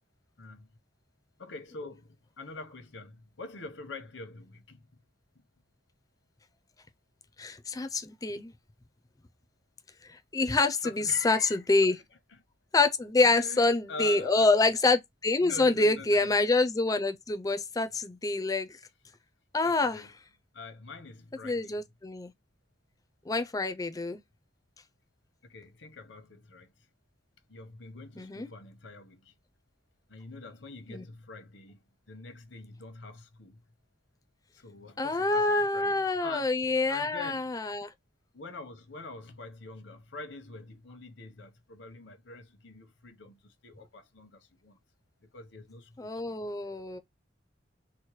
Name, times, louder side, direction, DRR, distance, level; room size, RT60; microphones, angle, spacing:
voice 1, 0.4-0.7 1.4-4.8 10.8-11.6 11.9-12.0 12.3-12.4 13.2-14.6 15.4-16.4 19.6-20.1 20.5-21.8 25.4-26.7 27.5-29.3 30.1-33.6 34.5-36.5 36.9-37.6 38.3-44.8 45.3-46.6, left 3 dB, 85° left, 0.9 m, -45 dB
voice 2, 7.4-8.5 10.1-12.0 12.7-18.8 19.5-20.0 21.4-22.3 23.3-24.2 28.2-28.5 30.9-31.0 35.0-37.9 46.0-47.0, left 3 dB, 20° left, 0.4 m, -26 dB
4.3 x 2.2 x 3.0 m
head